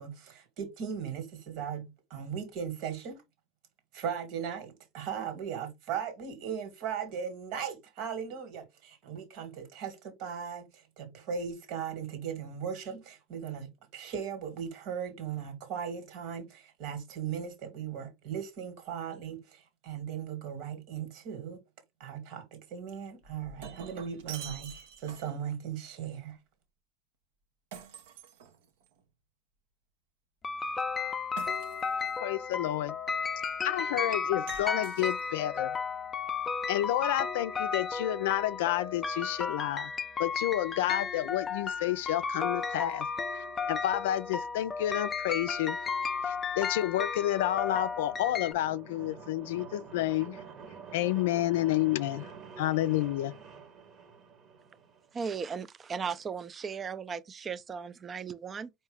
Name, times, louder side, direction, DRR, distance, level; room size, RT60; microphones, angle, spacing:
voice 1, 0.0-3.2 3.9-21.6 22.0-26.4, right 7 dB, 65° right, 1.8 m, -38 dB
Shatter, 23.2-25.5 27.7-29.0 31.4-32.2 34.5-35.6, right 7 dB, 80° right, 0.8 m, -47 dB
sound 1, 30.4-48.5, left 5 dB, 25° left, 0.5 m, -34 dB
voice 2, 32.2-33.0 33.6-35.7 36.7-39.9 40.2-45.9 46.2-50.4 50.9-52.3 52.6-53.3, left 14 dB, 80° left, 0.3 m, -30 dB
sound 2, 47.4-55.1, right 5 dB, 45° right, 1.1 m, -48 dB
voice 3, 55.1-58.7, right 6 dB, 30° right, 0.5 m, -37 dB
4.6 x 2.7 x 3.4 m
supercardioid pair, 100°, 0 cm